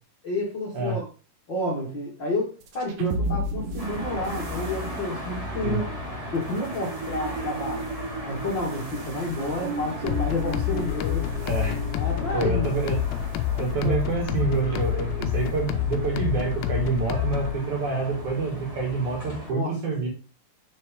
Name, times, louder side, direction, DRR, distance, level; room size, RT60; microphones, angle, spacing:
voice 1, 0.2-1.1 1.5-6.0 6.3-7.8 8.2-11.3 11.9-12.7 13.8-14.0 19.5-19.7, left 2 dB, 55° left, -3 dB, 1.3 m, -30 dB
sound 1, 2.6-13.1, right 2 dB, 85° right, 3.3 m, -35 dB
sound 2, 3.8-19.5, left 1 dB, 35° right, 0.5 m, -38 dB
sound 3, 10.1-17.6, left 11 dB, 85° left, 2.1 m, -28 dB
voice 2, 11.4-11.8 12.3-13.0 13.6-20.1, right 4 dB, 50° right, -1 dB, 3.1 m, -27 dB
7.1 x 6.4 x 3.7 m, 0.33 s
omnidirectional pair, 4.9 m